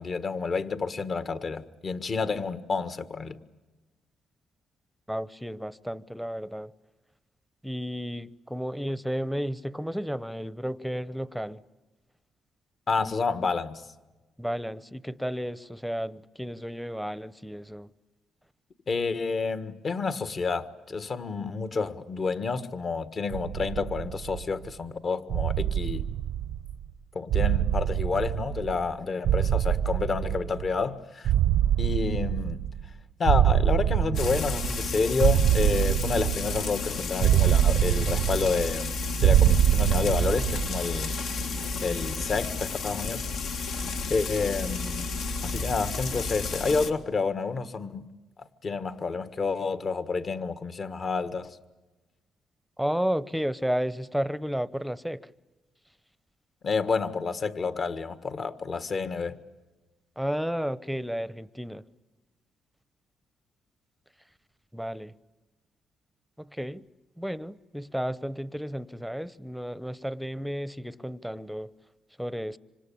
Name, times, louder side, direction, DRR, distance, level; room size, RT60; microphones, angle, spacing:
voice 1, 0.0-3.4 12.9-13.8 18.9-26.0 27.1-31.3 31.8-32.6 33.2-38.9 39.2-41.2 41.8-43.2 44.1-45.1 45.4-48.1 48.4-51.5 56.6-59.4, left 4 dB, 45° left, 1.6 m, -29 dB
voice 2, 5.1-6.7 7.6-11.6 14.4-17.9 52.8-55.3 60.2-61.8 64.7-65.2 66.4-66.9 67.2-71.7 72.2-72.6, equal, ahead, 0.9 m, -32 dB
sound 1, 23.3-24.7 25.3-26.8 27.3-28.9 29.2-30.8 31.2-32.9 33.2-34.9 35.2-36.8 37.2-38.9 39.2-40.8, right 11 dB, 85° right, 0.8 m, -24 dB
Frying (food), 34.1-46.9, left 3 dB, 75° left, 2.3 m, -32 dB
26.0 x 26.0 x 8.7 m
cardioid pair, 90°, 0 cm